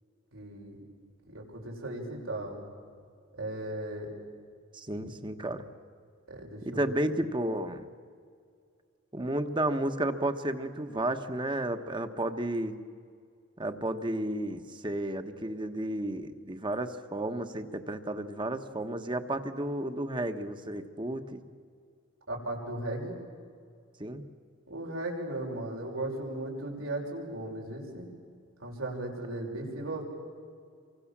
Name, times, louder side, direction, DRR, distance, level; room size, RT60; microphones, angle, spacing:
voice 1, 0.3-0.8 1.2-2.6 3.3-4.1 6.3-7.0 22.3-23.2 24.7-28.1 28.6-30.0, right 1 dB, 90° right, -1 dB, 6.2 m, -36 dB
voice 2, 4.7-5.7 6.6-7.8 9.1-12.8 13.6-21.4 24.0-24.2, right 1 dB, 25° right, 8 dB, 1.3 m, -32 dB
28.5 x 24.5 x 7.4 m, 2.2 s
head